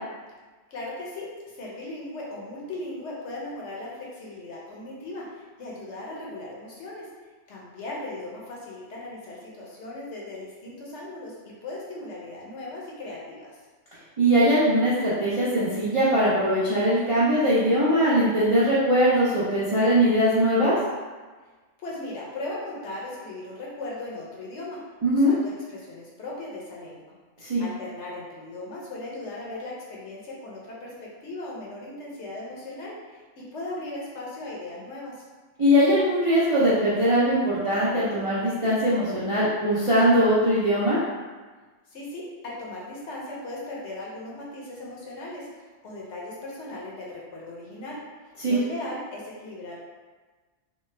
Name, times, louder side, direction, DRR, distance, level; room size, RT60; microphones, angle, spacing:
voice 1, 0.7-7.1 7.5-13.6 21.8-24.8 25.1-27.0 27.4-30.9 31.2-35.2 41.9-49.9, left 2 dB, 65° left, -4 dB, 0.9 m, -38 dB
voice 2, 14.2-20.7 25.0-25.4 27.4-27.6 35.6-41.0 48.4-48.6, equal, 45° right, -10 dB, 0.4 m, -21 dB
3.2 x 2.0 x 3.2 m, 1.3 s
omnidirectional pair, 1.4 m